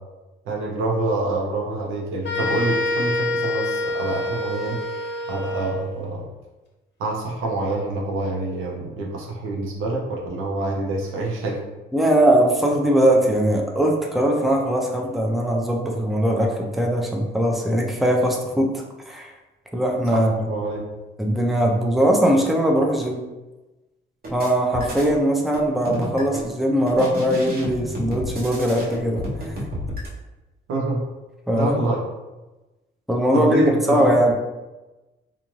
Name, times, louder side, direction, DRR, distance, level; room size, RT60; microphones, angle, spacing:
voice 1, 0.5-4.8 5.3-6.2 7.0-11.6 20.1-20.2 20.5-20.8 30.7-31.0 31.5-32.0 33.3-34.2, right 2 dB, 90° right, -2 dB, 0.7 m, -26 dB
sound 1, 2.2-5.9, left 1 dB, 60° left, 0.7 m, -26 dB
voice 2, 11.9-18.7 19.1-19.3 19.7-20.3 21.2-23.2 24.3-29.3 31.5-31.7 33.1-34.3, right 1 dB, ahead, 0 dB, 0.5 m, -20 dB
sound 2, 24.2-25.2 25.5-26.5 26.9-30.1, equal, 50° right, 0.9 m, -31 dB
2.5 x 2.4 x 3.0 m, 1.1 s
cardioid pair, 90°, 20 cm